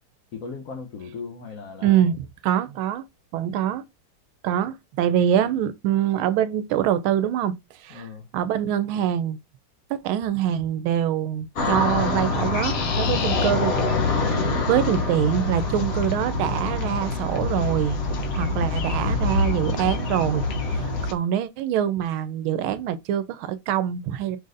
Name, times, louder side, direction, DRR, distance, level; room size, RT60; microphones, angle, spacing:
voice 1, 0.3-2.0 7.9-8.3, left 5 dB, 70° left, 0.7 m, -38 dB
voice 2, 1.8-3.0 3.3-3.8 4.4-7.5 7.8-8.0 8.3-9.4 9.9-13.7 14.2-14.4 14.7-18.0 18.3-20.4 20.7-24.4, right 10 dB, 85° right, 1.4 m, -24 dB
sound 1, 11.6-21.1, left 3 dB, 50° left, 1.2 m, -25 dB
5.0 x 4.0 x 2.5 m
omnidirectional pair, 2.2 m